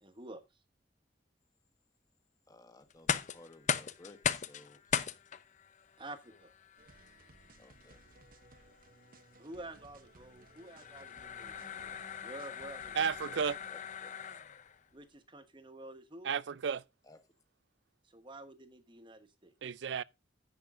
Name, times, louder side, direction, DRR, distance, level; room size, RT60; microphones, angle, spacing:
voice 1, 0.0-0.4 6.0-6.5 9.4-13.0 14.9-16.3 18.1-19.5, right 1 dB, 30° right, 1.3 m, -49 dB
voice 2, 2.5-4.8 7.6-8.0 13.3-14.1 17.0-17.2, left 2 dB, 20° left, 1.4 m, -57 dB
sound 1, 2.9-14.8, left 7 dB, 45° left, 0.6 m, -39 dB
sound 2, 6.8-13.7, right 3 dB, 50° right, 0.9 m, -60 dB
voice 3, 13.0-13.6 16.2-16.8 19.6-20.0, right 7 dB, 75° right, 0.4 m, -33 dB
10.5 x 7.8 x 3.7 m
head